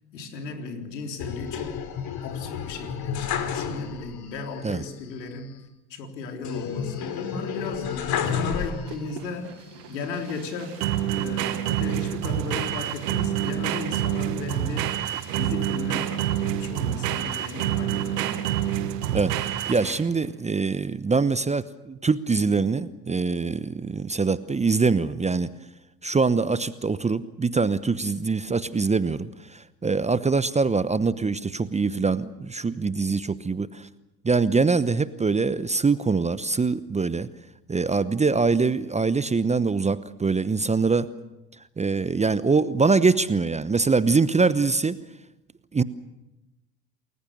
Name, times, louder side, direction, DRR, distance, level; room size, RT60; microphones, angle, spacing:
voice 1, 0.1-1.8 2.2-5.5 5.9-7.9 8.3-9.5 9.9-10.9 11.2-15.0 15.3-18.4, left 3 dB, 75° left, 3 dB, 3.9 m, -35 dB
sound 1, 1.2-4.2 4.5-4.6 6.4-9.2 9.7-10.5, left 7 dB, 45° left, 3.5 m, -31 dB
sound 2, 8.6-20.2, right 11 dB, 70° right, 1.7 m, -27 dB
voice 2, 19.1-25.5 26.0-33.9 34.2-37.3 37.7-41.1 41.8-45.0 45.7-45.8, right 4 dB, 15° right, 15 dB, 0.9 m, -23 dB
29.5 x 21.0 x 6.6 m, 0.96 s
figure-of-eight pair, 70°, 50 cm